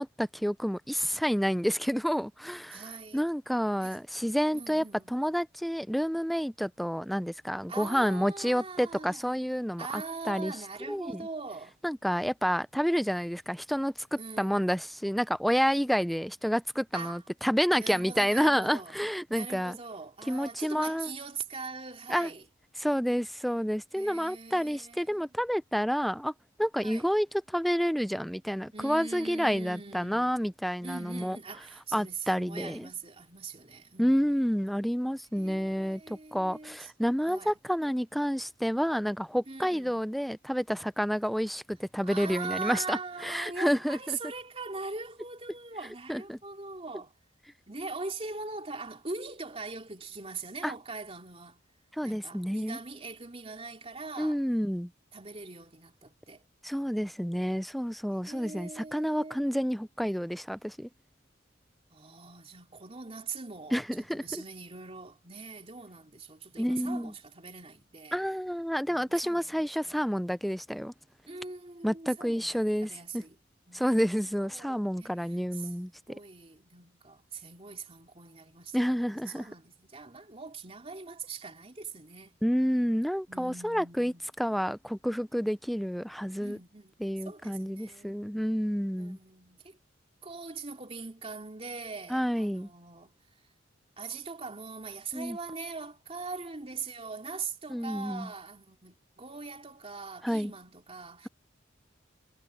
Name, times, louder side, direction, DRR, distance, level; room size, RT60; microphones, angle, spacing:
voice 1, 0.0-2.8 3.1-10.6 10.9-11.2 11.8-19.8 20.3-21.1 22.1-22.3 22.8-26.3 26.6-31.4 31.9-32.9 34.0-44.2 46.1-46.4 50.6-50.7 52.0-52.8 54.2-54.9 56.6-60.9 63.7-64.4 66.6-67.1 68.1-70.9 71.8-73.2 73.7-75.9 78.7-79.5 82.4-86.6 87.0-89.2 92.1-92.7 95.1-95.4 97.7-98.3 100.2-100.5, equal, ahead, 0.4 m, -29 dB
voice 2, 2.7-3.2 3.8-4.0 4.5-5.1 7.7-9.3 9.8-11.8 14.2-14.7 16.9-17.2 17.7-18.9 19.3-22.4 23.9-25.3 26.8-27.1 28.7-30.3 30.8-34.3 35.3-36.9 37.2-37.5 39.5-40.0 42.0-47.1 47.7-51.6 52.0-54.4 55.1-56.4 58.3-59.5 61.9-68.2 68.9-70.0 71.3-73.4 73.7-82.4 83.3-84.2 86.4-86.9 87.2-88.2 89.0-89.8 90.2-93.2 94.0-101.3, right 4 dB, 30° right, 3.2 m, -42 dB
head